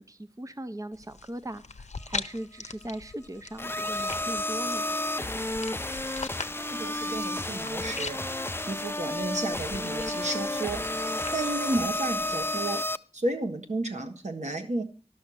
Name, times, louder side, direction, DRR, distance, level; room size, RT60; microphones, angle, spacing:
voice 1, 0.0-5.0, right 1 dB, 30° right, 11 dB, 0.6 m, -39 dB
sound 1, 0.9-12.4, left 4 dB, 85° left, 0.5 m, -42 dB
sound 2, 3.6-13.0, left 1 dB, 20° left, 0.5 m, -31 dB
voice 2, 6.6-8.2 8.7-10.8 11.3-12.8 13.1-14.8, right 2 dB, 90° right, 4 dB, 1.5 m, -32 dB
11.5 x 6.3 x 6.3 m, 0.37 s
wide cardioid pair, 40°, 12 cm